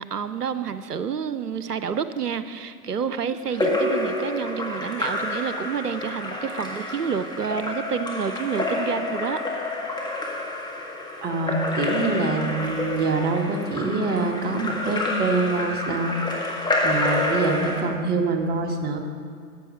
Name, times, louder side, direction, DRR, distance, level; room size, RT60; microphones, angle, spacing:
voice 1, 0.0-9.4, right 7 dB, 90° right, 12 dB, 0.6 m, -29 dB
Splash splatter / Drip / Trickle dribble, 3.5-17.8, left 2 dB, 10° left, 1.7 m, -28 dB
voice 2, 11.2-16.6 16.8-19.0, right 3 dB, 20° right, 3 dB, 1.4 m, -25 dB
14.5 x 8.5 x 5.5 m, 2.2 s
figure-of-eight pair, 100°, 46 cm